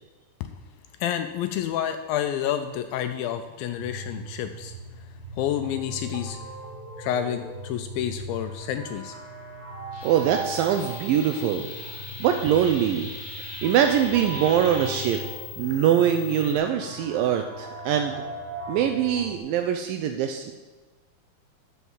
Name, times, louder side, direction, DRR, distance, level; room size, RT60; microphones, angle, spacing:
voice 1, 1.0-6.4 7.0-9.2, left 10 dB, 80° left, 8 dB, 2.2 m, -29 dB
sound 1, 3.7-19.4, right 1 dB, 65° right, 4.3 m, -39 dB
sound 2, 9.9-15.2, left 1 dB, 55° left, 0.4 m, -41 dB
sound 3, 10.0-16.6, left 14 dB, 30° left, 1.7 m, -43 dB
voice 2, 10.0-11.7 12.2-13.1 13.6-15.2 15.6-18.2 18.7-20.5, right 9 dB, 80° right, 6 dB, 2.1 m, -23 dB
11.5 x 4.6 x 7.2 m, 1.3 s
omnidirectional pair, 4.4 m